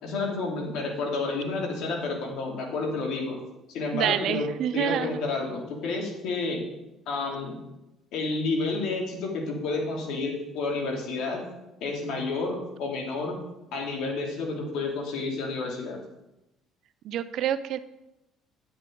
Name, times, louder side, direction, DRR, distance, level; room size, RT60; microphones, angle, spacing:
voice 1, 0.0-3.4 3.7-4.5 4.7-6.6 7.1-7.6 8.1-11.4 11.8-13.4 13.7-16.0, left 3 dB, 70° left, 0 dB, 2.6 m, -30 dB
voice 2, 3.9-5.2 17.0-17.8, right 10 dB, 65° right, 13 dB, 0.5 m, -27 dB
10.0 x 8.7 x 3.8 m, 0.94 s
cardioid pair, 95°, 0 cm